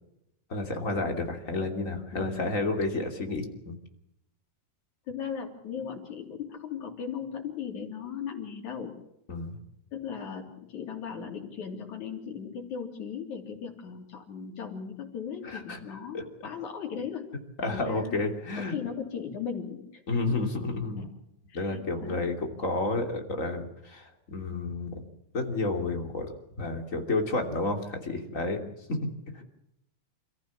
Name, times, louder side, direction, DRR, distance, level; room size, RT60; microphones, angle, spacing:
voice 1, 0.5-3.8 9.3-9.6 15.4-15.8 16.1-16.3 17.6-18.7 20.1-21.1 21.5-25.0 25.3-26.3 26.6-28.6 28.9-29.0 29.3-29.4, left 2 dB, 25° left, 4 dB, 3.1 m, -30 dB
voice 2, 2.1-2.5 5.1-8.9 9.9-17.3 17.6-18.2 18.6-20.0 21.0-21.1 21.5-22.3, left 7 dB, 85° left, 2 dB, 4.6 m, -37 dB
28.0 x 14.5 x 7.3 m, 0.83 s
omnidirectional pair, 3.3 m